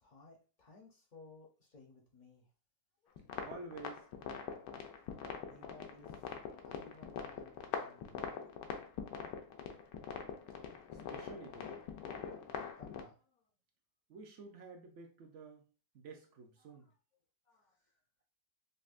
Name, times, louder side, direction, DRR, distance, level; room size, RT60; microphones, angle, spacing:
voice 1, 0.0-2.5 3.0-3.3 5.5-8.3 12.4-13.4 16.6-16.9 17.5-18.0, left 3 dB, 50° left, 0 dB, 0.5 m, -60 dB
sound 1, 3.2-13.0, left 7 dB, 85° left, 1.2 m, -44 dB
voice 2, 3.4-4.1 11.1-11.8 14.1-15.6 15.9-16.9, right 3 dB, 65° right, 3 dB, 0.7 m, -50 dB
5.4 x 2.0 x 2.4 m, 0.35 s
omnidirectional pair, 1.8 m